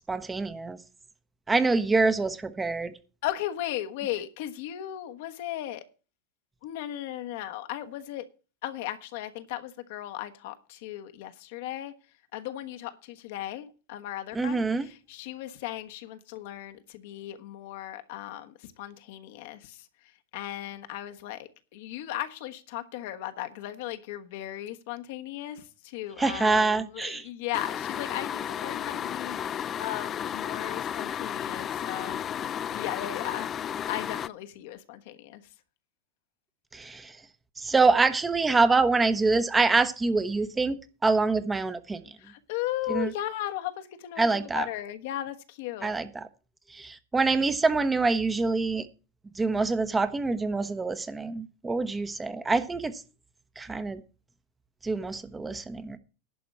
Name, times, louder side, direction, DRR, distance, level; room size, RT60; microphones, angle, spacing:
voice 1, 0.1-0.8 1.5-2.9 14.3-14.9 26.2-27.3 36.7-37.2 37.6-42.1 42.9-43.1 44.2-44.7 45.8-46.3 46.7-48.9 49.4-53.0 53.6-54.0 54.8-56.0, right 3 dB, 15° right, 1.0 m, -25 dB
voice 2, 3.2-5.8 6.6-8.3 8.6-11.9 12.3-33.5 33.9-35.4 42.2-45.9, left 13 dB, 65° left, 1.3 m, -36 dB
sound 1, 27.5-34.3, left 9 dB, 35° left, 0.5 m, -33 dB
11.0 x 5.0 x 8.3 m
hypercardioid pair, 95°, 0 cm